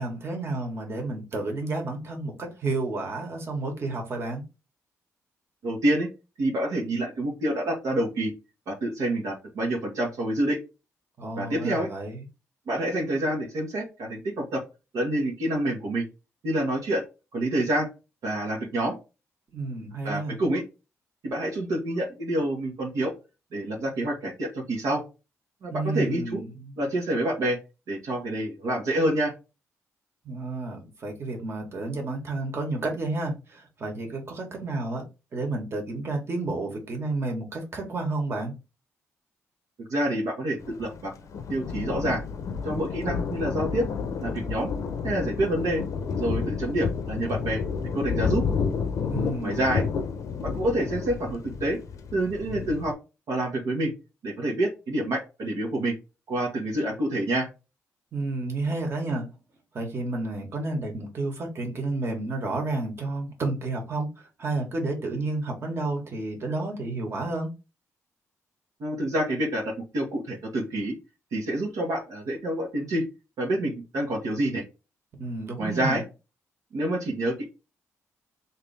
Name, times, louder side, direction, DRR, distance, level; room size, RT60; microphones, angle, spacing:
voice 1, 0.0-4.4 11.2-12.2 19.5-20.4 25.7-26.8 30.2-35.0 35.3-38.5 49.0-49.7 58.1-59.3 59.7-64.1 64.4-67.5 75.1-76.0, right 2 dB, 45° right, 1.4 m, -31 dB
voice 2, 5.6-6.1 6.4-8.3 8.7-10.6 11.3-11.9 12.7-14.6 14.9-16.0 16.4-17.0 17.3-17.9 18.2-18.9 20.0-20.6 21.2-23.1 23.5-25.0 25.6-26.4 26.8-27.6 27.9-29.3 39.8-41.1 41.5-42.2 42.6-43.9 44.2-44.7 45.0-45.8 46.1-47.6 47.9-48.4 49.4-49.8 50.4-51.8 52.1-52.9 53.3-53.9 54.2-56.0 56.3-57.5 68.8-70.9 71.3-73.0 73.4-74.6 75.6-76.0 76.7-77.5, right 1 dB, 75° right, 1.1 m, -27 dB
Thunder, 40.6-52.9, left 6 dB, 65° left, 0.6 m, -30 dB
3.3 x 2.8 x 3.3 m
cardioid pair, 80°, 6 cm